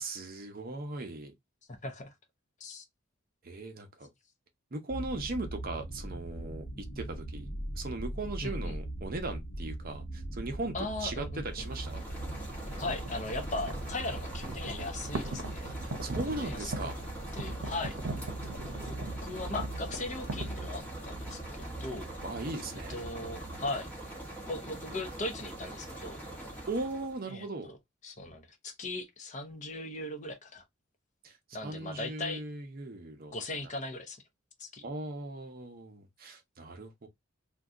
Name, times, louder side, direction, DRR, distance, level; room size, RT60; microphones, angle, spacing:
voice 1, 0.0-1.3 3.4-4.1 4.7-7.5 7.8-10.8 11.0-12.1 15.8-17.0 22.2-23.0 26.7-27.7 31.2-33.3 34.8-37.1, right 2 dB, 45° right, 0.7 m, -38 dB
voice 2, 1.7-2.1 2.6-2.8 8.4-8.7 10.7-11.7 12.8-15.7 16.3-16.9 17.3-18.0 18.9-19.0 19.2-22.1 22.9-23.9 24.4-26.2 27.3-27.8 28.0-30.6 31.5-32.4 33.3-34.2 34.6-34.8, left 2 dB, 35° left, 0.7 m, -38 dB
sound 1, 4.9-23.8, right 1 dB, 75° left, 1.0 m, -41 dB
sound 2, 11.4-27.2, right 1 dB, 5° left, 1.0 m, -43 dB
sound 3, 12.6-20.9, right 3 dB, 85° right, 0.7 m, -42 dB
2.7 x 2.3 x 3.5 m
head